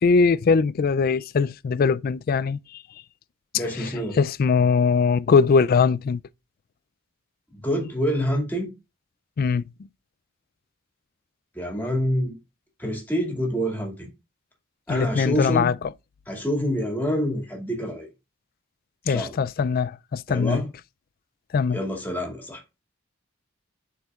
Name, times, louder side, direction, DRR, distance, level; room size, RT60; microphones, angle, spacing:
voice 1, 0.0-2.8 3.7-3.9 4.1-6.2 9.4-9.7 14.9-15.7 19.1-20.6 21.5-21.8, left 5 dB, 45° left, 0.3 m, -21 dB
voice 2, 3.5-4.2 7.5-8.7 11.5-12.4 12.8-14.1 14.9-15.7 16.3-18.1 19.1-19.4 20.3-20.7 21.7-22.6, equal, 10° left, 2.3 m, -27 dB
11.5 x 4.7 x 2.4 m
head